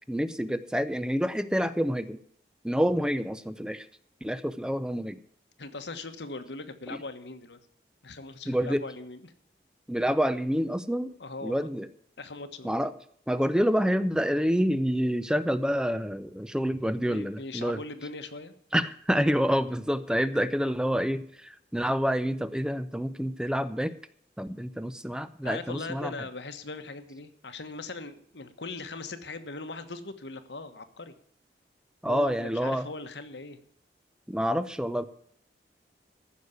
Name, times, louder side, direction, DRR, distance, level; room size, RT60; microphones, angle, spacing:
voice 1, 0.1-2.2 2.6-3.9 4.2-5.2 6.9-7.0 8.5-8.8 9.9-11.1 11.4-11.9 12.6-12.9 13.3-17.8 18.7-23.9 24.4-26.1 32.0-32.9 34.3-35.1, equal, 5° right, 13 dB, 0.5 m, -27 dB
voice 2, 5.6-7.6 8.0-9.3 11.2-11.7 12.2-12.7 16.9-18.5 25.4-31.1 32.1-33.6, left 3 dB, 85° left, 9 dB, 1.4 m, -40 dB
14.5 x 6.5 x 8.1 m, 0.62 s
head